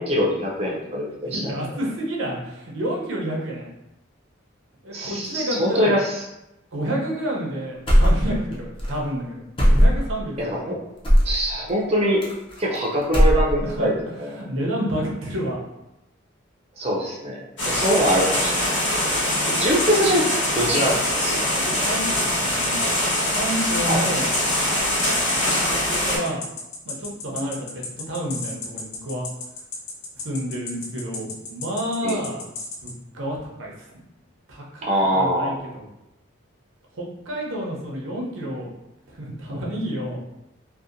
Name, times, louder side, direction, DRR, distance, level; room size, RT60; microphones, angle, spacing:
voice 1, 0.0-1.5 4.9-6.0 10.5-10.8 11.2-12.2 12.6-13.9 14.2-14.3 16.8-18.8 19.0-19.2 19.5-20.3 20.5-21.5 23.9-24.1 32.0-32.2 34.9-35.6, equal, 30° right, -3 dB, 0.4 m, -23 dB
voice 2, 1.2-3.7 4.8-5.9 6.7-10.7 13.6-13.9 14.3-15.6 21.4-22.8 23.3-24.3 25.6-26.4 26.8-29.3 30.2-32.5 32.8-33.9 34.5-35.9 36.9-38.7 39.1-40.2, equal, 80° right, -2 dB, 0.6 m, -29 dB
sound 1, 7.9-8.5 8.8-8.9 9.6-10.2 11.0-11.4 12.2-12.8 13.0-13.8, equal, 25° left, 0.5 m, -17 dB
sound 2, 17.6-26.2, left 1 dB, 65° left, 1.2 m, -23 dB
sound 3, 17.9-32.9, left 4 dB, 80° left, 0.4 m, -34 dB
2.7 x 2.1 x 2.5 m, 0.91 s
head